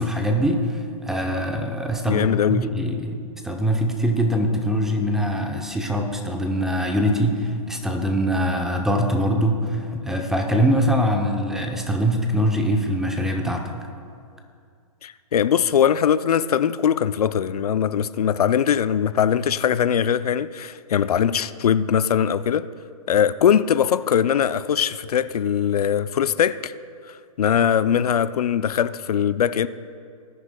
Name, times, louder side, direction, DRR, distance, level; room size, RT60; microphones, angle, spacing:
voice 1, 0.0-3.2 3.4-13.6, equal, ahead, 0.6 m, -23 dB
voice 2, 2.1-2.6 15.0-22.7 23.1-26.7 27.1-29.7, left 8 dB, 85° left, 0.4 m, -21 dB
20.0 x 9.9 x 2.2 m
hypercardioid pair, 150°, 19 cm